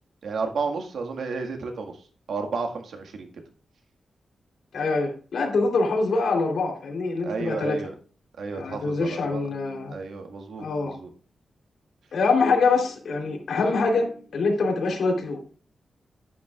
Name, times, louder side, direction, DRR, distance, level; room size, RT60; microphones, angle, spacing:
voice 1, 0.2-1.9 2.3-3.3 7.2-7.9 8.4-9.5 9.9-11.1, right 4 dB, 90° right, 4 dB, 1.8 m, -32 dB
voice 2, 4.7-7.8 8.5-9.9 10.6-10.9 12.1-15.5, left 3 dB, 80° left, 0 dB, 3.5 m, -24 dB
11.0 x 10.5 x 2.5 m, 0.40 s
wide cardioid pair, 145°, 0 cm